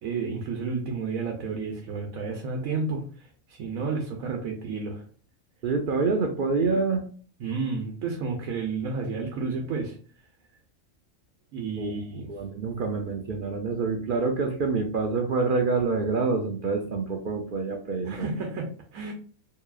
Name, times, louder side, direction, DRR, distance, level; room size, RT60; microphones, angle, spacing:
voice 1, 0.0-5.1 7.4-10.0 11.5-12.3 18.0-19.1, right 4 dB, 85° right, 3 dB, 1.2 m, -31 dB
voice 2, 5.6-7.0 11.8-11.9 12.3-18.3, right 4 dB, 60° right, 3 dB, 0.6 m, -26 dB
4.7 x 3.0 x 2.3 m, 0.43 s
omnidirectional pair, 1.4 m